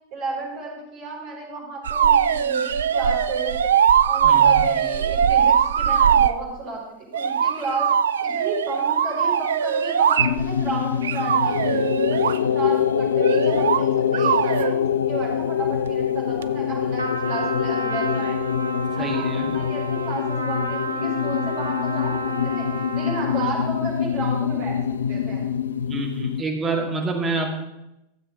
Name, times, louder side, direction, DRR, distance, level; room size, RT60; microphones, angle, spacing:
voice 1, 0.1-3.7 4.0-6.8 7.1-7.9 8.2-11.8 12.1-18.4 18.9-22.7 22.9-24.8 25.1-25.4, right 3 dB, 45° right, -1 dB, 4.7 m, -32 dB
sound 1, 1.8-6.4 7.1-10.6 11.0-12.4 13.2-13.8 14.1-14.7 16.4-16.5, right 8 dB, 70° right, 0.4 m, -20 dB
voice 2, 4.2-4.6 19.0-19.5 25.9-27.6, right 3 dB, 20° right, 1 dB, 2.3 m, -27 dB
sound 2, 10.2-26.4, left 8 dB, 75° left, 0.4 m, -24 dB
Trumpet, 17.0-23.7, right 3 dB, 85° right, 0.9 m, -32 dB
13.5 x 7.8 x 4.7 m, 0.89 s
figure-of-eight pair, 85°, 0 cm